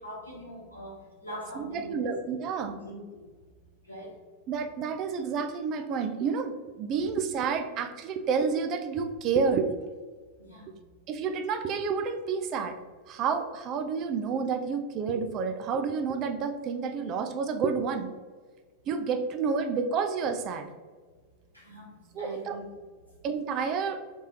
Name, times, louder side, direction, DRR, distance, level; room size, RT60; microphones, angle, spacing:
voice 1, 0.0-2.1 2.6-3.3 3.8-4.1 10.4-10.7 21.5-22.7, right 1 dB, 80° left, -5 dB, 0.9 m, -42 dB
voice 2, 1.6-2.7 4.5-9.7 11.1-12.8 13.1-18.1 18.9-20.7 22.1-22.6 23.2-24.0, right 5 dB, 35° right, 7 dB, 0.4 m, -29 dB
3.5 x 3.2 x 2.7 m, 1.4 s
figure-of-eight pair, 90°, 0 cm